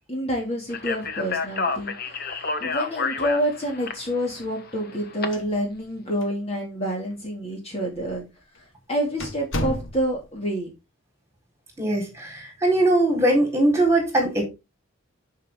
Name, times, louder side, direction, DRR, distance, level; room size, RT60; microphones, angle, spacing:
voice 1, 0.1-8.2 8.9-10.7, equal, 30° left, 2.5 m, -28 dB
Speech, 0.7-5.3, left 4 dB, 45° left, 1.3 m, -29 dB
sound 1, 5.2-6.0 6.2-6.3 7.1-7.2 7.9-8.1 8.6-8.7 9.2-10.3, left 1 dB, 65° left, 1.6 m, -31 dB
voice 2, 11.8-14.4, right 1 dB, 15° right, 4.4 m, -21 dB
11.0 x 5.7 x 3.7 m
head